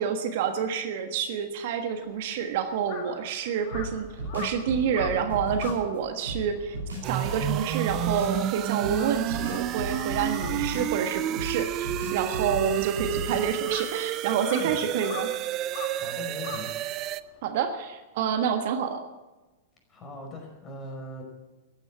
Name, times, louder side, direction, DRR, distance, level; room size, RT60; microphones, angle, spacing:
voice 1, 0.0-4.1 4.3-6.8 7.1-15.3 17.4-19.0, right 7 dB, 55° right, 7 dB, 1.5 m, -28 dB
Crow, 1.9-8.5 8.8-17.4, left 6 dB, 45° left, 2.4 m, -44 dB
sound 1, 3.7-5.8 6.3-8.4 8.8-11.1 11.4-13.6, equal, 80° right, 6.2 m, -35 dB
sound 2, 7.0-17.2, right 14 dB, 35° right, 0.6 m, -31 dB
voice 2, 15.9-16.7 19.9-21.2, left 2 dB, 25° left, 2 dB, 5.2 m, -39 dB
14.5 x 10.0 x 8.9 m, 1.1 s
figure-of-eight pair, 100°, 0 cm